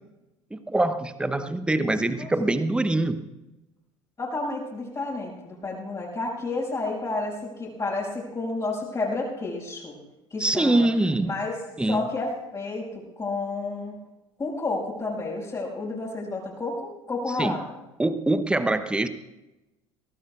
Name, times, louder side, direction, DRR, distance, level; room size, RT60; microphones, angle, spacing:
voice 1, 0.5-3.2 10.4-11.3 11.8-12.0 17.4-17.5 18.0-19.1, right 2 dB, 5° right, 11 dB, 0.9 m, -24 dB
voice 2, 4.2-10.0 10.3-10.9 11.2-11.6 11.9-14.0 14.4-17.8, left 3 dB, 25° left, -6 dB, 5.8 m, -31 dB
23.5 x 17.5 x 2.5 m, 0.99 s
figure-of-eight pair, 65°, 16 cm